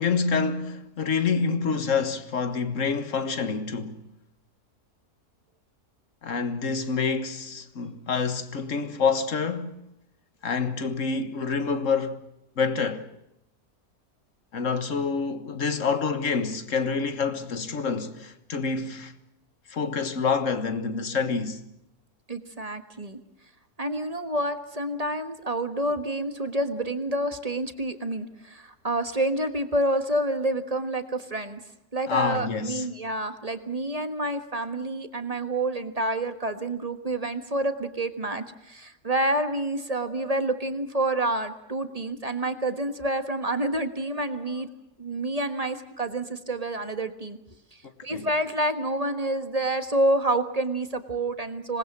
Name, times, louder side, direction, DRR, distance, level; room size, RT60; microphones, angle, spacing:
voice 1, 0.0-4.0 6.2-9.8 10.4-12.2 12.6-13.1 14.5-19.1 19.7-21.7 32.1-32.9 48.1-48.3, left 5 dB, 55° left, 1.8 m, -27 dB
voice 2, 22.3-23.2 23.8-31.6 31.9-44.7 45.0-47.4 47.7-51.8, right 1 dB, 25° right, 1.4 m, -28 dB
26.0 x 19.5 x 7.4 m
omnidirectional pair, 1.7 m